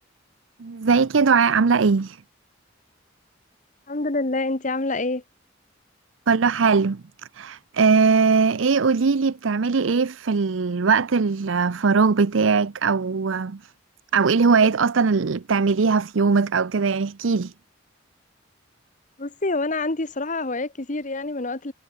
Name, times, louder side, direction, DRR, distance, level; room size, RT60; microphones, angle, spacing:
voice 1, 0.6-2.2 6.3-7.0 7.3-13.6 14.1-17.5, right 5 dB, 85° right, 0.6 m, -20 dB
voice 2, 3.9-5.2 19.2-21.7, left 2 dB, 40° left, 1.3 m, -26 dB
head